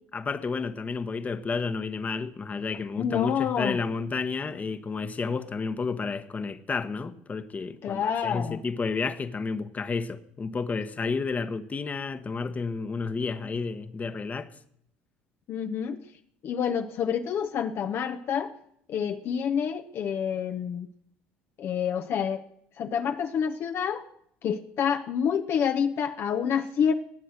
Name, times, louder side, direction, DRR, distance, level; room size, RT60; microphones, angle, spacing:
voice 1, 0.1-14.5, left 4 dB, 30° left, 1.1 m, -31 dB
voice 2, 2.7-3.8 7.8-8.6 15.5-16.0 16.4-18.5 18.9-20.9 21.6-22.4 22.8-24.0 24.4-26.9, left 7 dB, 55° left, 0.8 m, -28 dB
19.5 x 7.8 x 6.4 m
hypercardioid pair, 75°, 5 cm